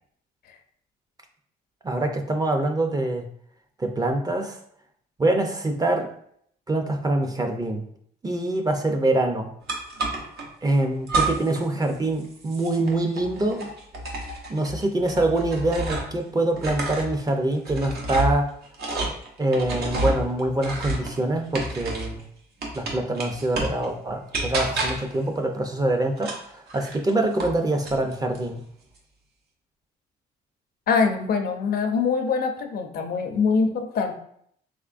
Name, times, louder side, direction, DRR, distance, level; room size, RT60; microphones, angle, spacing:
voice 1, 1.8-3.3 3.8-4.6 5.2-6.1 6.7-7.8 8.2-9.5 10.6-13.7 14.5-18.5 19.4-22.2 22.7-28.6, right 2 dB, 20° right, 4 dB, 0.5 m, -24 dB
sound 1, 9.7-10.5 11.1-11.7 11.9-16.2 16.5-22.2 22.6-23.8 24.3-25.2 26.2-27.6 27.8-28.4, right 2 dB, 70° right, 0.9 m, -30 dB
voice 2, 30.9-34.2, left 5 dB, 65° left, 5 dB, 0.6 m, -23 dB
3.5 x 3.1 x 2.5 m, 0.67 s
cardioid pair, 85°, 17 cm